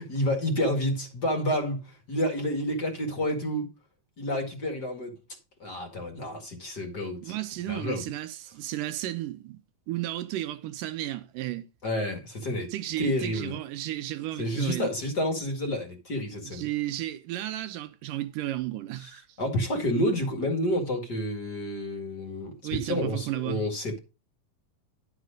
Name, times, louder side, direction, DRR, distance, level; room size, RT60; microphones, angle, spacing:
voice 1, 0.0-3.7 4.2-5.2 5.6-7.4 7.7-8.0 11.8-12.7 13.0-13.6 14.4-16.6 19.0-19.1 19.4-24.0, left 1 dB, 35° left, 2.2 m, -29 dB
voice 2, 7.2-9.6 9.9-11.7 12.7-14.9 16.4-19.2 22.6-23.6, right 14 dB, 80° right, 2.3 m, -33 dB
11.5 x 5.0 x 5.1 m
omnidirectional pair, 4.0 m